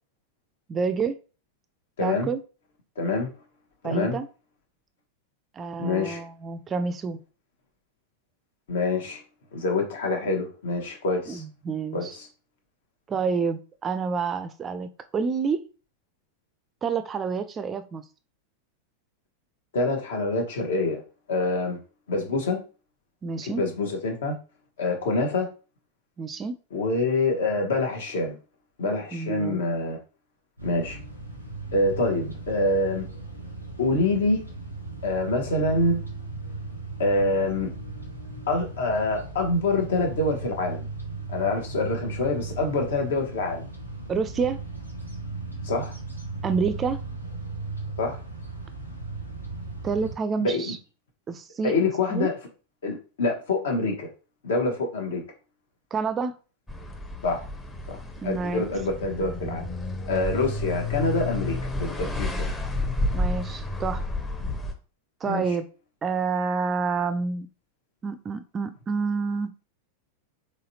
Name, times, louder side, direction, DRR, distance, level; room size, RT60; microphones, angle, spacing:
voice 1, 0.7-1.2 2.0-2.4 3.8-4.3 5.5-7.2 11.3-12.2 13.1-15.7 16.8-18.0 23.2-23.6 26.2-26.6 29.1-29.6 44.1-44.6 46.4-47.0 49.8-50.8 51.3-51.7 52.1-52.3 55.9-56.3 58.2-58.6 63.1-64.0 65.2-65.6 66.0-67.5 68.0-69.5, right 5 dB, 25° right, 11 dB, 0.3 m, -28 dB
voice 2, 2.0-2.3 3.0-3.3 3.8-4.2 5.8-6.2 8.7-9.2 9.5-11.4 11.9-12.3 19.7-21.0 21.3-21.8 22.1-22.6 23.4-24.4 24.8-25.5 26.7-28.3 28.8-30.0 30.6-31.0 31.7-33.1 33.8-34.4 35.0-36.0 37.0-37.7 38.5-40.8 41.3-43.6 45.6-45.9 48.0-48.2 50.4-50.7 51.6-52.3 52.8-54.1 54.4-55.2 57.2-57.4 57.9-58.0 58.2-59.6 60.1-62.5 65.2-65.4, left 2 dB, 60° left, 3 dB, 1.1 m, -26 dB
sound 1, 30.6-50.2, right 3 dB, 90° left, 0.8 m, -37 dB
sound 2, 56.7-64.7, left 2 dB, 10° left, 0.7 m, -31 dB
4.0 x 3.2 x 2.7 m, 0.35 s
figure-of-eight pair, 90°, 0 cm